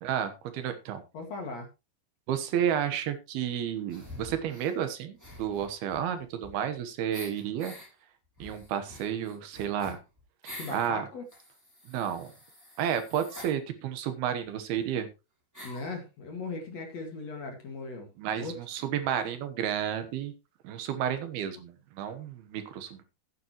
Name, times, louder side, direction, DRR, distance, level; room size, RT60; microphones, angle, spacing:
voice 1, 0.0-1.0 2.3-7.8 8.4-10.0 10.4-11.0 11.9-12.3 12.8-15.1 18.2-20.3 20.6-23.0, right 9 dB, 75° right, 10 dB, 3.0 m, -31 dB
voice 2, 1.1-1.7 10.5-11.2 15.6-18.6, left 3 dB, 50° left, 3 dB, 2.7 m, -38 dB
sound 1, 3.9-4.7 5.2-6.8 7.1-7.9 8.4-10.9 11.3-13.5 14.4-14.5 14.7-14.8 15.5-15.9, left 1 dB, 5° right, 6.7 m, -47 dB
13.5 x 9.8 x 3.0 m, 0.26 s
omnidirectional pair, 4.6 m